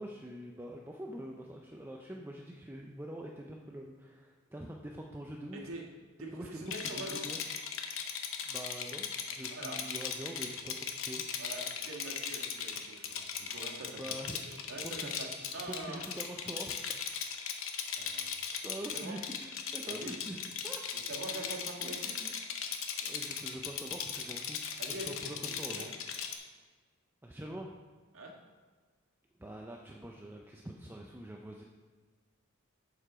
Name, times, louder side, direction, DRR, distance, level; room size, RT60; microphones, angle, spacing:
voice 1, 0.0-5.7 6.3-7.4 8.5-11.2 14.0-17.2 18.6-20.8 21.3-22.3 23.0-25.9 27.2-27.8 29.4-31.6, right 1 dB, 10° right, 0 dB, 0.4 m, -45 dB
voice 2, 5.5-5.8 6.2-7.4 9.5-9.8 11.4-14.2 14.7-16.0 18.0-18.3 18.9-19.2 19.9-20.2 20.9-22.2 24.8-25.2 25.5-25.9 28.1-28.3, right 2 dB, 70° right, -1 dB, 1.6 m, -44 dB
Rattle, 6.7-26.4, left 7 dB, 65° left, 0.8 m, -38 dB
7.6 x 6.7 x 4.9 m, 1.4 s
head